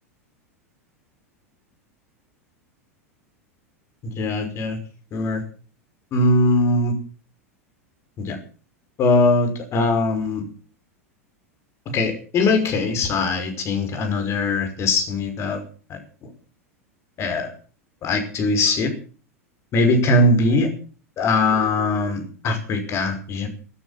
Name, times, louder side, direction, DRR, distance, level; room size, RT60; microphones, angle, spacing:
voice 1, 4.0-4.8 5.1-5.4 6.1-6.9 8.2-8.4 9.0-10.4 11.9-15.6 15.9-16.0 17.2-17.5 18.0-18.9 19.7-20.7 21.2-23.5, left 2 dB, 35° left, 7 dB, 5.4 m, -21 dB
13.5 x 13.0 x 7.1 m, 0.39 s
figure-of-eight pair, 90°, 8 cm